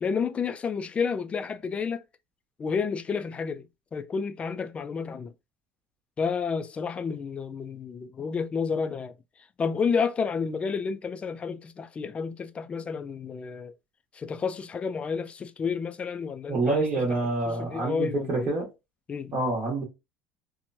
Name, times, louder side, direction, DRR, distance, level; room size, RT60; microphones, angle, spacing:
voice 1, 0.0-2.0 2.6-3.7 3.9-5.3 6.2-9.1 9.6-13.7 14.1-16.9 17.5-18.5 19.1-19.3, left 5 dB, 25° left, 0.3 m, -30 dB
voice 2, 16.5-18.7 19.3-19.8, right 2 dB, 45° right, 1.2 m, -27 dB
2.9 x 2.2 x 2.6 m
supercardioid pair, 110°, 5 cm